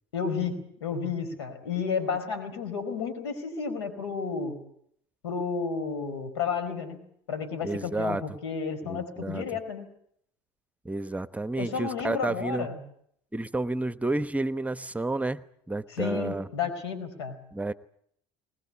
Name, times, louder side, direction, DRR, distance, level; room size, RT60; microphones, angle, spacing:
voice 1, 0.1-4.6 5.2-7.0 7.3-9.9 11.6-12.8 15.9-17.4, left 5 dB, 90° left, 10 dB, 4.6 m, -32 dB
voice 2, 7.6-8.2 8.8-9.4 10.8-12.7 13.3-15.4 15.7-16.5 17.5-17.7, right 2 dB, 10° right, 13 dB, 1.0 m, -30 dB
21.0 x 20.5 x 8.6 m, 0.68 s
hypercardioid pair, 75°, 14 cm